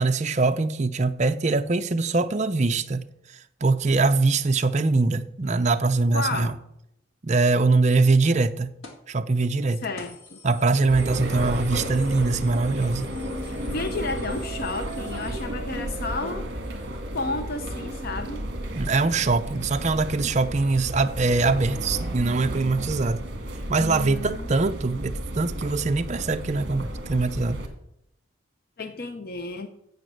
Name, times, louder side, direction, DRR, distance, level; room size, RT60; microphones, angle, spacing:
voice 1, 0.0-3.0 3.6-6.5 7.2-8.7 9.1-9.8 10.4-13.1 18.7-23.2 23.7-27.6, right 3 dB, 35° right, 0.5 m, -23 dB
voice 2, 6.1-6.5 9.8-10.4 13.5-16.5 16.9-18.4 23.8-24.5 28.8-29.7, left 3 dB, 45° left, 0.7 m, -32 dB
sound 1, 8.8-9.1 9.5-9.6 10.0-15.4, left 3 dB, 85° left, 2.0 m, -48 dB
sound 2, 10.9-27.7, right 1 dB, 50° right, 1.8 m, -33 dB
sound 3, 13.1-18.1, equal, 10° right, 1.7 m, -42 dB
9.3 x 7.8 x 6.6 m
head